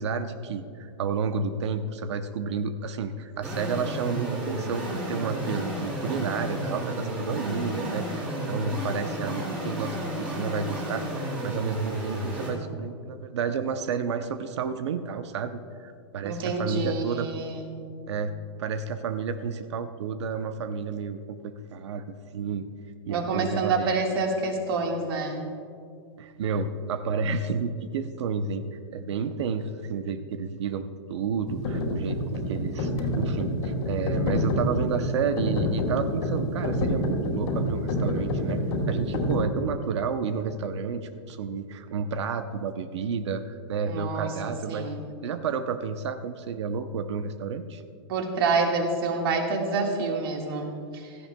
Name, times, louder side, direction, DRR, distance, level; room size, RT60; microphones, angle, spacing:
voice 1, 0.0-17.3 18.1-18.3 18.6-21.2 21.4-22.6 23.1-23.9 26.2-38.6 38.9-44.9 45.2-47.8, right 5 dB, 70° right, 9 dB, 0.7 m, -31 dB
sound 1, 3.4-12.5, right 1 dB, 5° right, 2.8 m, -32 dB
voice 2, 16.2-17.6 23.1-25.4 43.9-44.3 44.7-45.0 48.1-51.1, right 4 dB, 50° right, 2 dB, 1.7 m, -27 dB
sound 2, 31.5-39.4, left 1 dB, 60° left, 2.4 m, -28 dB
16.5 x 14.5 x 2.2 m, 2.3 s
supercardioid pair, 170°, 15 cm